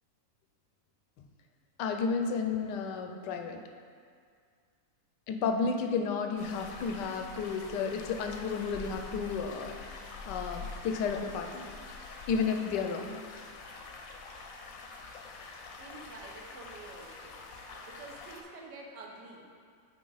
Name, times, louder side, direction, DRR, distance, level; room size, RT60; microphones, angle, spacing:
voice 1, 1.8-3.6 5.3-11.7 12.3-13.2, left 5 dB, 80° left, 4 dB, 1.2 m, -32 dB
sound 1, 6.4-18.4, left 4 dB, 65° left, 1.0 m, -45 dB
voice 2, 15.8-19.5, right 3 dB, 75° right, -1 dB, 1.5 m, -49 dB
9.5 x 4.2 x 3.9 m, 2.1 s
omnidirectional pair, 1.9 m